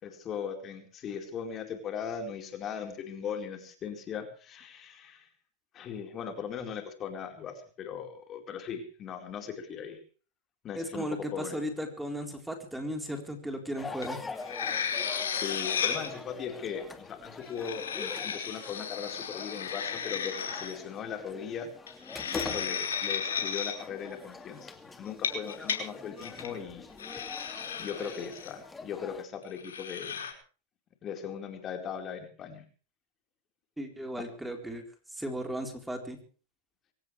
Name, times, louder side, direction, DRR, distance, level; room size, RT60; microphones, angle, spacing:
voice 1, 0.0-5.3 5.7-10.0 10.6-11.6 15.3-21.7 22.3-26.9 27.8-30.2 31.0-32.6, left 7 dB, 30° left, 5 dB, 4.3 m, -39 dB
voice 2, 10.8-14.2 33.8-34.8 35.1-36.2, equal, 5° right, 5 dB, 3.9 m, -36 dB
sound 1, 13.8-29.2, left 4 dB, 15° left, 2.4 m, -44 dB
sound 2, 14.0-14.1 14.4-16.1 17.4-20.7 21.9-23.7 25.1-25.8 26.2-26.5 27.0-28.5 29.6-30.3, left 7 dB, 80° left, 4.9 m, -34 dB
23.5 x 18.0 x 3.3 m, 0.39 s
hypercardioid pair, 110°, 0 cm